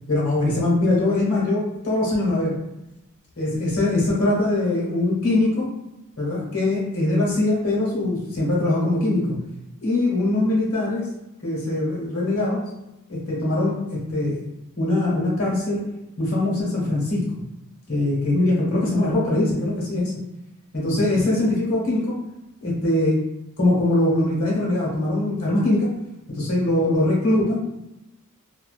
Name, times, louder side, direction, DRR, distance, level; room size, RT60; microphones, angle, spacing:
voice 1, 0.1-2.5 3.4-5.7 6.2-9.4 9.8-11.1 11.4-12.6 13.1-14.4 14.8-15.9 16.2-17.2 17.9-20.1 20.7-22.1 22.6-23.2 23.6-25.9 26.3-27.7, left 2 dB, 70° left, -5 dB, 1.2 m, -22 dB
2.6 x 2.3 x 2.4 m, 0.92 s
head